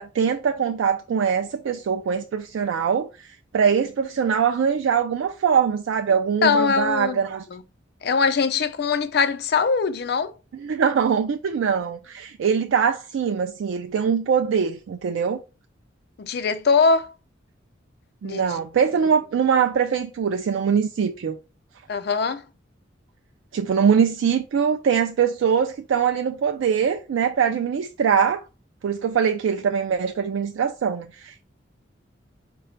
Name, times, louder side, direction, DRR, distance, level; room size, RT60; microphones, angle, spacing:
voice 1, 0.0-3.3 3.5-7.4 10.5-15.4 18.2-21.4 23.5-28.4 28.8-31.4, right 7 dB, 85° right, 0.3 m, -22 dB
voice 2, 6.4-7.2 7.5-7.6 8.0-10.3 16.2-17.1 18.2-18.6 21.9-22.4, left 5 dB, 55° left, 0.4 m, -22 dB
4.9 x 2.2 x 4.4 m
head